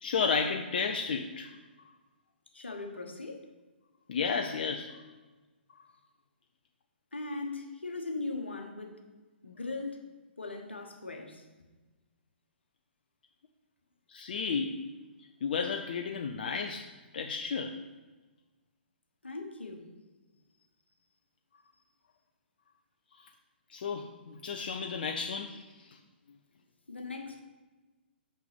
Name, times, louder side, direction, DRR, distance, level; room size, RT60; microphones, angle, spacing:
voice 1, 0.0-1.5 4.1-4.9 14.1-14.9 15.4-16.8 17.1-17.8 23.7-26.0, left 5 dB, 55° left, 4 dB, 0.5 m, -32 dB
voice 2, 2.5-3.5 7.1-9.0 9.4-10.0 10.4-11.4 19.2-19.9 26.9-27.4, left 3 dB, 80° left, 4 dB, 1.3 m, -39 dB
5.9 x 5.5 x 5.2 m, 1.2 s
figure-of-eight pair, 120°, 6 cm